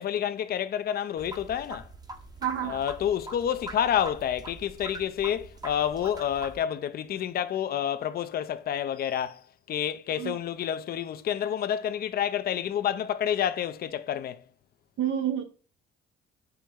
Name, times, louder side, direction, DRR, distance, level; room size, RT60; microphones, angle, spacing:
voice 1, 0.0-1.9 2.6-14.4, left 9 dB, 50° left, 0.5 m, -29 dB
sound 1, 1.2-6.6, right 2 dB, 20° right, 0.7 m, -43 dB
voice 2, 2.4-2.8 10.2-10.4 15.0-15.4, right 10 dB, 80° right, 0.7 m, -29 dB
4.5 x 3.0 x 3.6 m
cardioid pair, 90°, 20 cm